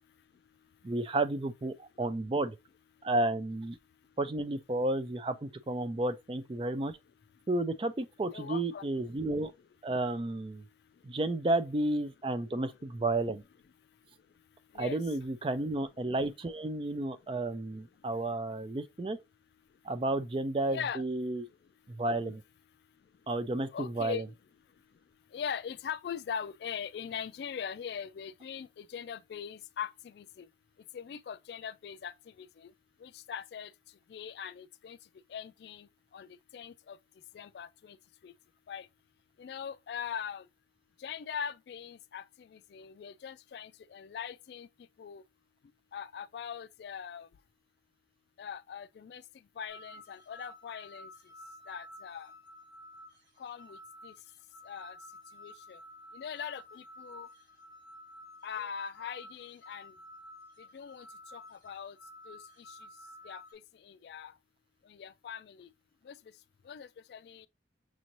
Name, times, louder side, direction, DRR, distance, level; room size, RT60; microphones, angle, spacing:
voice 1, 0.8-2.6 3.0-3.8 4.2-6.9 7.5-9.5 9.8-10.6 11.0-13.4 14.8-19.2 19.8-21.4 21.9-22.4 23.3-24.2, right 2 dB, 30° right, 0.4 m, -32 dB
voice 2, 8.3-8.8 14.7-15.0 20.7-21.0 23.7-24.2 25.3-30.5 30.9-32.7 33.0-33.7 34.1-35.0 35.3-35.9 36.1-37.0 37.3-38.0 38.2-38.3 38.7-38.9 39.4-40.4 41.0-44.7 45.0-45.2 45.9-47.3 48.4-49.2 49.6-51.1 51.7-52.3 53.4-53.8 54.0-54.1 54.7-55.0 55.3-55.8 56.1-57.3 58.4-59.9 60.7-61.1 61.3-62.0 62.3-62.4 63.2-63.4 63.8-64.3 64.9-65.7 66.1-66.2 66.7-67.5, left 7 dB, 65° left, 0.3 m, -41 dB
sound 1, 49.7-63.5, left 1 dB, 50° right, 3.3 m, -52 dB
6.1 x 2.6 x 3.0 m
head